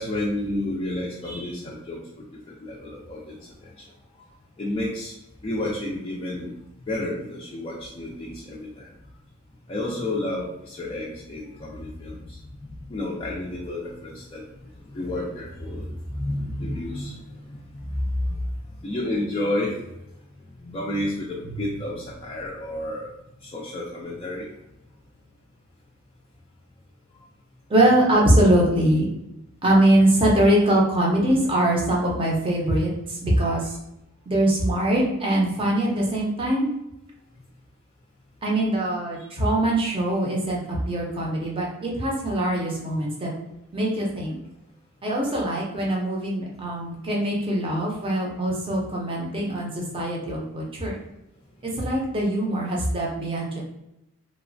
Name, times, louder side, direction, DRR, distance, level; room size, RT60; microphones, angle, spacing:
voice 1, 0.0-3.7 4.6-5.1 5.4-6.5 6.9-8.9 9.7-12.4 12.9-14.4 14.9-18.3 18.7-19.8 20.6-23.1 23.4-24.5, left 1 dB, 25° left, -4 dB, 0.3 m, -31 dB
voice 2, 27.7-29.1 29.6-33.8 34.3-36.7 38.4-43.3 43.7-44.4 45.0-50.9 51.6-53.6, right 1 dB, 25° right, -2 dB, 0.5 m, -22 dB
3.0 x 2.1 x 2.5 m, 0.86 s
head